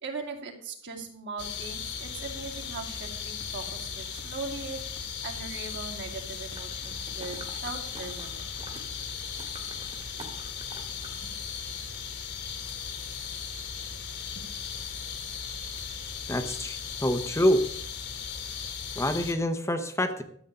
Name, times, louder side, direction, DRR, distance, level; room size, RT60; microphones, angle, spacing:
voice 1, 0.0-4.8 5.2-7.4 7.6-8.5 11.2-11.3 14.4-14.5, right 4 dB, 55° right, 1 dB, 2.5 m, -39 dB
sound 1, 1.4-19.3, left 6 dB, 55° left, 1.6 m, -37 dB
sound 2, 2.2-8.4, left 1 dB, 75° left, 1.5 m, -54 dB
sound 3, 6.5-11.2 11.6-11.7, right 2 dB, 25° right, 1.7 m, -48 dB
voice 2, 16.3-17.6 19.0-20.2, left 1 dB, 15° left, 7 dB, 0.8 m, -26 dB
13.0 x 7.2 x 6.7 m, 0.63 s
head